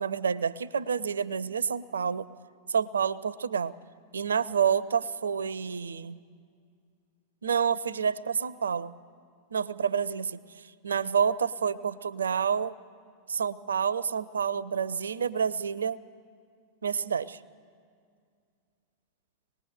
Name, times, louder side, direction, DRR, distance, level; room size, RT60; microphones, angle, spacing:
voice 1, 0.0-2.3 2.7-3.7 4.1-6.2 7.4-8.9 9.5-12.8 13.3-16.0 16.8-17.4, right 7 dB, 70° right, 20 dB, 0.5 m, -28 dB
25.0 x 19.5 x 6.6 m, 2.2 s
figure-of-eight pair, 90°, 0 cm